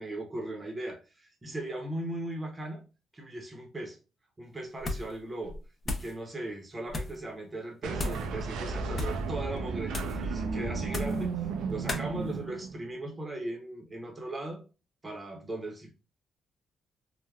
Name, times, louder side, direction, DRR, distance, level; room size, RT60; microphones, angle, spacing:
voice 1, 0.0-2.9 3.1-4.0 4.4-5.6 5.8-14.6 15.0-15.9, right 1 dB, 25° right, 0.7 m, -38 dB
sound 1, 4.8-5.2 5.5-6.2 6.9-7.2 7.9-8.3 8.9-9.3 9.9-10.2 10.9-11.3 11.9-12.1, left 2 dB, 35° left, 0.6 m, -35 dB
sound 2, 7.8-13.0, right 4 dB, 90° right, 0.4 m, -34 dB
3.2 x 2.1 x 2.3 m
cardioid pair, 90°, 0 cm